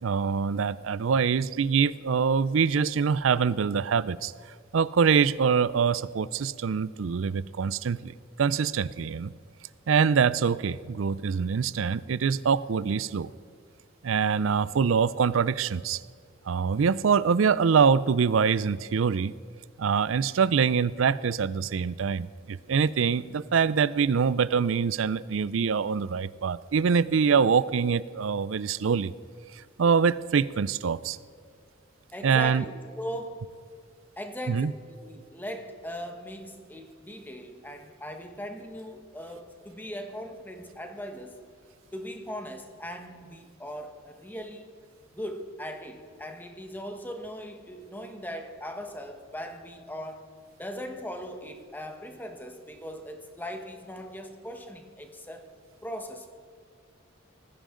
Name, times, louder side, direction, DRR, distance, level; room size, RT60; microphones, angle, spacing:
voice 1, 0.0-4.3 4.7-9.3 9.9-13.3 14.0-16.0 16.5-19.3 19.8-29.1 29.8-31.2 32.2-32.7 34.5-34.7, right 6 dB, 85° right, 18 dB, 0.4 m, -24 dB
voice 2, 32.1-33.5 34.2-41.4 41.9-44.8 45.1-50.3 50.6-55.5 55.8-56.3, equal, 10° left, 5 dB, 1.3 m, -39 dB
19.5 x 15.0 x 3.8 m, 2.1 s
head